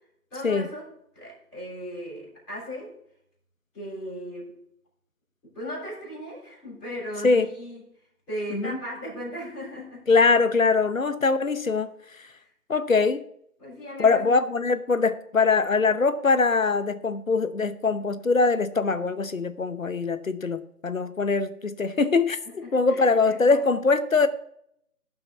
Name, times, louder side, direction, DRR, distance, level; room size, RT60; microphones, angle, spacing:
voice 1, 0.3-3.0 3.7-4.6 5.4-7.8 8.3-10.0 13.6-14.3 22.6-23.6, equal, 5° left, -18 dB, 3.8 m, -37 dB
voice 2, 10.1-11.9 12.7-13.2 14.0-24.3, left 4 dB, 60° left, 12 dB, 0.9 m, -22 dB
16.5 x 5.8 x 4.1 m, 0.71 s
figure-of-eight pair, 175°, 45 cm